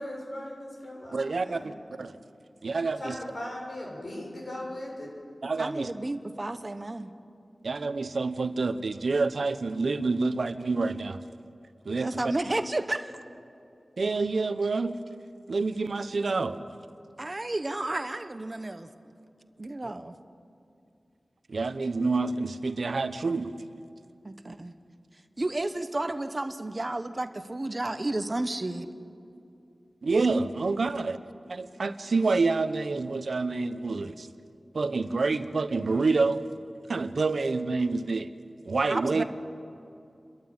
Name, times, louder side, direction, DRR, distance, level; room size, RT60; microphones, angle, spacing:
voice 1, 0.0-1.7 3.0-5.1, left 1 dB, 55° left, -2 dB, 7.2 m, -38 dB
voice 2, 1.1-1.7 2.0-2.2 2.6-3.2 5.4-5.9 7.6-11.2 11.8-12.3 14.0-15.0 15.5-16.6 19.8-19.9 21.5-23.5 30.0-31.2 31.5-34.3 34.7-36.4 36.9-38.3 38.6-39.2, right 3 dB, 75° right, 11 dB, 0.9 m, -27 dB
voice 3, 5.6-7.1 12.0-13.1 17.2-18.9 19.6-20.1 24.2-24.7 25.4-28.9 38.9-39.2, right 2 dB, 35° right, 9 dB, 1.0 m, -32 dB
29.5 x 13.0 x 8.9 m, 2.5 s
wide cardioid pair, 65°, 0 cm